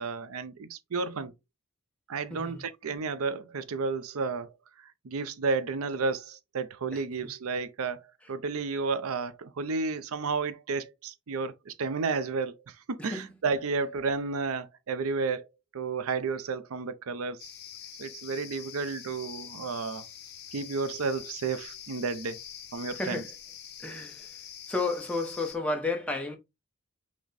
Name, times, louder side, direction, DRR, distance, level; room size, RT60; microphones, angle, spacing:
voice 1, 0.0-1.3 2.1-4.5 5.0-8.0 8.3-15.5 15.7-17.5 18.0-20.0 20.5-22.4 22.7-23.2, right 4 dB, 75° right, 0.5 m, -32 dB
voice 2, 2.3-2.6 6.9-7.0 13.0-13.3 23.0-23.3 23.8-24.4 24.7-26.4, left 3 dB, 5° left, 0.8 m, -32 dB
sound 1, 17.4-25.6, left 9 dB, 50° left, 0.9 m, -45 dB
5.9 x 2.1 x 3.9 m
head